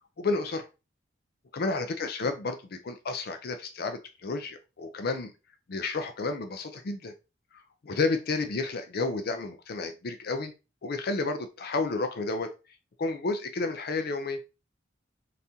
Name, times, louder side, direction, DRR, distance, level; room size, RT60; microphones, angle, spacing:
voice 1, 0.2-0.7 1.5-5.3 5.7-7.1 7.5-10.5 10.8-12.5 13.0-14.4, left 3 dB, 55° left, 0.5 m, -31 dB
4.1 x 3.5 x 2.7 m
head